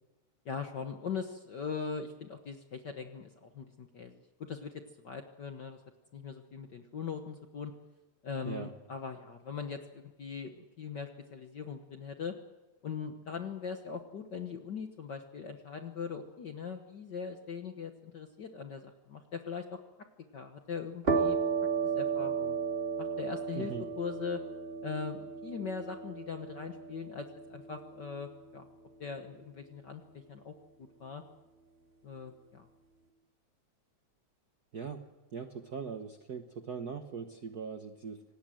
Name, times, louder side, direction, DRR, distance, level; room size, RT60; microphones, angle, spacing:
voice 1, 0.4-4.1 4.4-5.8 6.1-7.7 8.2-12.4 12.8-19.8 20.3-21.4 21.8-22.6 23.0-24.4 24.8-28.7 29.0-31.2 32.0-32.7, left 5 dB, 55° left, 6 dB, 1.3 m, -40 dB
sound 1, 21.0-28.5, right 5 dB, 20° right, 2.5 m, -34 dB
voice 2, 23.5-23.9 34.7-38.2, right 6 dB, 60° right, 6 dB, 1.0 m, -41 dB
25.5 x 18.5 x 7.7 m, 1.1 s
omnidirectional pair, 3.3 m